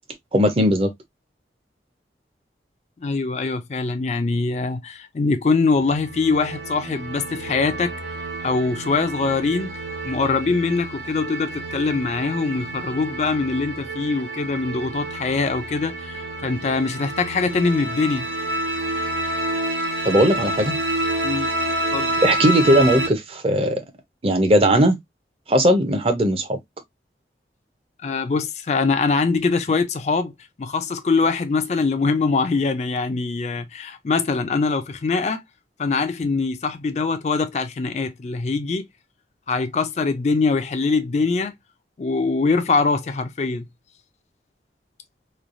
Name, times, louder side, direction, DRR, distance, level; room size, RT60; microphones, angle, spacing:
voice 1, 0.3-0.9 20.0-20.8 22.2-23.8 24.2-25.0 25.5-26.6, right 1 dB, 30° right, 0.6 m, -18 dB
voice 2, 3.0-7.9 8.4-9.7 10.0-18.3 21.2-21.5 21.9-22.2 28.0-30.3 30.6-35.4 35.8-38.8 39.5-41.5 42.0-43.7, left 4 dB, 40° left, 0.4 m, -23 dB
sound 1, 5.7-23.1, right 1 dB, 85° right, 0.8 m, -29 dB
3.1 x 2.2 x 2.5 m
head